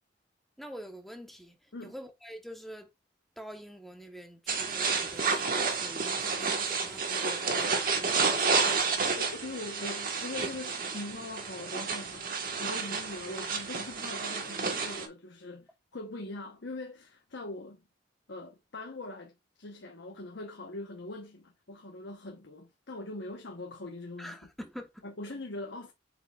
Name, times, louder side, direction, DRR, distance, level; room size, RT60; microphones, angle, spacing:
voice 1, 0.6-2.9 3.4-8.8 24.2-24.9, equal, ahead, 1.1 m, -46 dB
sound 1, 4.5-15.1, right 4 dB, 50° right, 1.4 m, -30 dB
voice 2, 9.1-17.8 18.3-19.3 19.6-24.5 25.0-25.9, left 2 dB, 75° left, 1.0 m, -42 dB
7.7 x 5.2 x 2.4 m
head